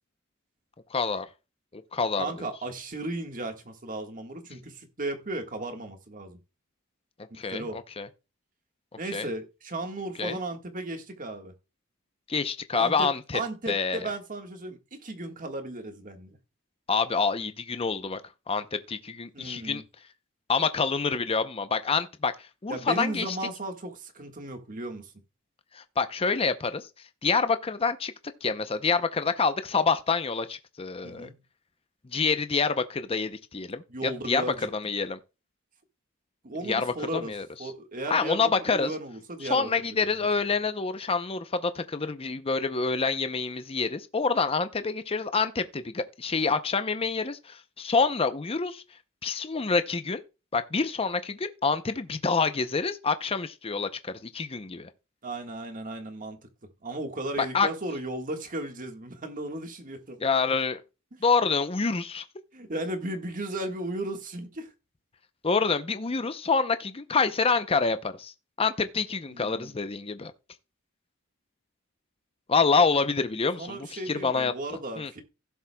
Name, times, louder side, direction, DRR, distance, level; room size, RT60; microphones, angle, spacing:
voice 1, 0.9-1.3 1.7-2.3 7.3-8.1 9.1-9.3 10.2-10.4 12.3-13.4 13.7-14.1 16.9-18.2 18.5-19.8 20.5-23.4 25.7-26.9 27.2-28.1 28.4-31.3 32.0-34.4 34.7-35.2 36.6-37.5 38.1-38.9 39.4-48.8 49.2-50.2 50.5-54.9 57.4-57.7 60.2-60.8 61.2-62.2 65.4-68.3 68.6-70.3 72.5-74.5 75.0-75.1, left 4 dB, 25° left, 0.6 m, -27 dB
voice 2, 2.2-6.4 7.3-7.8 9.0-11.5 12.7-13.1 13.3-16.4 19.3-19.8 22.7-25.1 31.0-31.3 33.9-34.7 36.4-37.3 37.6-39.9 55.2-56.4 56.8-60.2 62.5-64.7 69.3-69.7 73.6-75.2, right 2 dB, 40° right, 1.6 m, -35 dB
16.0 x 7.1 x 2.2 m
head